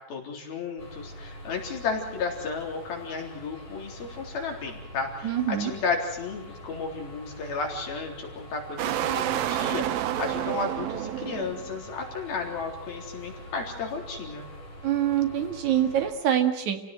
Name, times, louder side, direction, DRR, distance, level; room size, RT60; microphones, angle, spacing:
voice 1, 0.1-14.5, left 4 dB, 90° left, 1 dB, 5.7 m, -33 dB
sound 1, 0.8-16.1, equal, 55° left, 8.3 m, -44 dB
voice 2, 5.2-5.7 14.8-16.8, right 10 dB, 55° right, 5 dB, 3.2 m, -25 dB
sound 2, 8.8-11.8, right 12 dB, 85° right, 2.8 m, -29 dB
28.5 x 17.5 x 7.8 m, 0.87 s
omnidirectional pair, 4.1 m